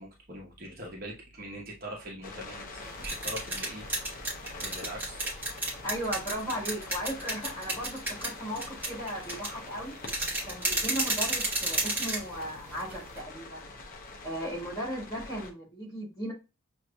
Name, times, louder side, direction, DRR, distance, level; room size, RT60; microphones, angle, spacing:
voice 1, 0.0-3.9 4.6-5.2, equal, 40° right, -2 dB, 1.0 m, -42 dB
sound 1, 2.2-15.5, left 3 dB, 40° left, 0.8 m, -45 dB
sound 2, 2.8-13.2, right 2 dB, 10° right, 1.2 m, -33 dB
voice 2, 5.8-10.0 10.5-13.7 14.2-16.3, equal, 20° left, -5 dB, 2.3 m, -36 dB
6.4 x 2.7 x 2.3 m, 0.28 s
head